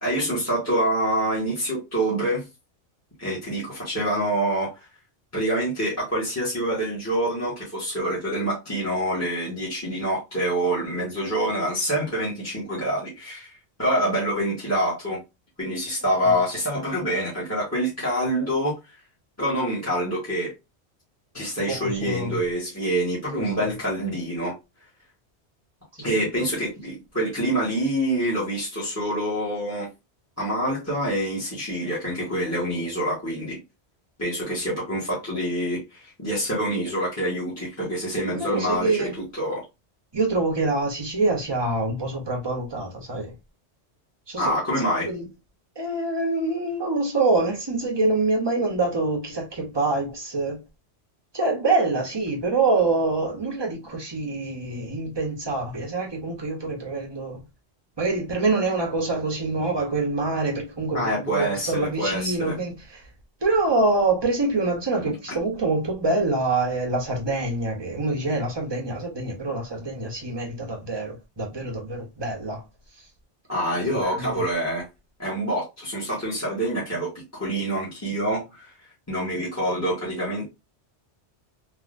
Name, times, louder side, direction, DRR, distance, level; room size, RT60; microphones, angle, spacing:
voice 1, 0.0-2.4 3.2-4.9 5.3-13.5 13.8-15.2 15.6-18.7 19.4-20.5 21.3-24.5 26.0-29.9 30.4-33.6 34.2-39.1 39.4-39.6 44.4-45.1 60.9-62.5 73.5-74.8 75.2-78.7 79.1-80.4, right 1 dB, 15° left, 1.1 m, -26 dB
voice 2, 21.7-22.4 23.4-23.7 26.0-26.1 38.3-39.1 40.1-43.3 44.3-44.5 45.1-45.3 45.8-50.6 51.3-57.4 58.0-63.1 63.4-72.6 73.9-74.4, right 3 dB, 25° right, 0.8 m, -25 dB
3.5 x 2.4 x 2.4 m
omnidirectional pair, 1.2 m